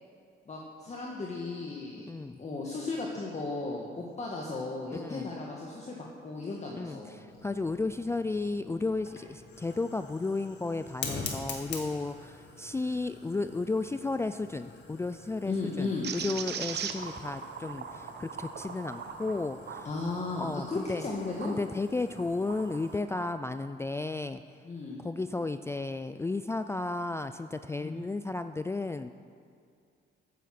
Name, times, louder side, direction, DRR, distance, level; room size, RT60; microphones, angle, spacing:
voice 1, 0.5-2.1 2.4-6.0 6.2-7.2 15.4-16.1 19.8-21.6 24.6-25.0 27.8-28.0, left 3 dB, 35° left, -2 dB, 1.8 m, -35 dB
voice 2, 2.1-2.4 4.9-5.3 6.7-19.9 20.4-21.1 21.4-24.4 25.0-29.1, left 3 dB, 15° left, 10 dB, 0.4 m, -33 dB
Fire, 7.3-23.0, left 5 dB, 65° left, 2.0 m, -46 dB
sound 1, 16.0-21.6 22.1-23.3, right 7 dB, 55° right, 1.0 m, -40 dB
14.0 x 9.3 x 6.0 m, 2.3 s
cardioid pair, 90°, 20 cm